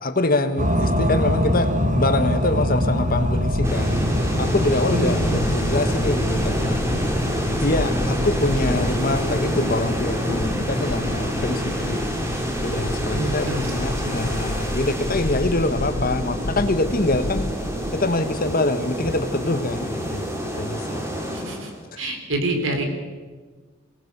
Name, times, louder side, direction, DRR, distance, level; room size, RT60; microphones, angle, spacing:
voice 1, 0.0-3.9 4.4-6.8 7.6-12.1 12.6-17.5 17.9-20.3 20.5-21.0 21.9-22.0, left 2 dB, 45° left, 9 dB, 1.4 m, -24 dB
sound 1, 0.6-20.4, equal, 40° right, 1.8 m, -27 dB
sound 2, 2.5-18.0, left 1 dB, 85° left, 1.2 m, -32 dB
sound 3, 3.6-21.8, equal, 15° right, 2.9 m, -28 dB
voice 2, 4.9-5.5 13.1-13.7 14.0-14.1 21.3-21.7 22.0-22.8, right 1 dB, 85° right, 5 dB, 3.8 m, -27 dB
23.5 x 18.5 x 6.8 m, 1.4 s
head